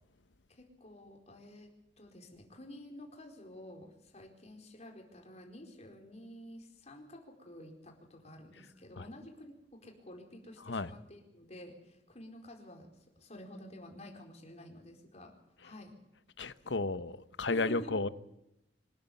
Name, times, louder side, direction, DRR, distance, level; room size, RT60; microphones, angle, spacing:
voice 1, 0.5-15.3 15.6-15.9 16.6-16.9 17.5-18.0, left 1 dB, 40° left, 4.6 m, -50 dB
voice 2, 16.4-18.1, left 3 dB, 85° left, 1.0 m, -33 dB
25.0 x 13.0 x 8.4 m
head